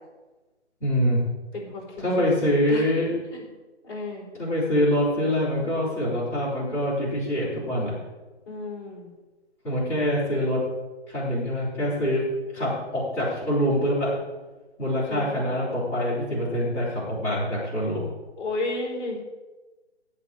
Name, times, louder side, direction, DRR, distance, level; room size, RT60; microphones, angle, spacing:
voice 1, 0.8-1.3 2.0-3.2 4.3-8.0 9.6-10.7 11.1-12.3 12.5-14.2 14.8-18.0, equal, 5° left, -12 dB, 4.1 m, -25 dB
voice 2, 1.5-1.9 2.7-2.9 3.3-3.5 3.8-4.3 8.5-9.1 15.1-15.5 18.4-19.2, left 2 dB, 20° left, -4 dB, 3.7 m, -32 dB
15.0 x 5.0 x 8.9 m, 1.2 s
figure-of-eight pair, 160°, 34 cm